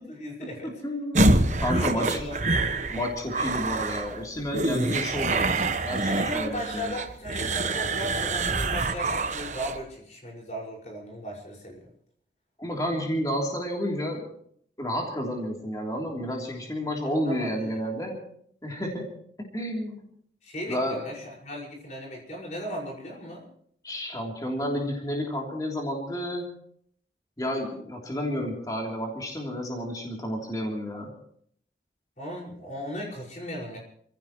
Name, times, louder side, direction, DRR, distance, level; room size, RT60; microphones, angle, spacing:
voice 1, 0.1-0.7 1.7-2.4 6.1-11.8 17.0-17.8 20.4-23.4 32.2-33.8, equal, 40° left, -2 dB, 5.6 m, -36 dB
voice 2, 0.8-2.3 2.9-7.0 12.6-14.3 14.8-18.2 18.6-19.1 19.5-20.0 20.7-21.0 23.8-26.5 27.4-31.1, equal, 20° left, -1 dB, 3.3 m, -31 dB
sound 1, 1.2-9.8, right 2 dB, 45° right, 1.1 m, -26 dB
28.0 x 16.0 x 3.1 m, 0.64 s
head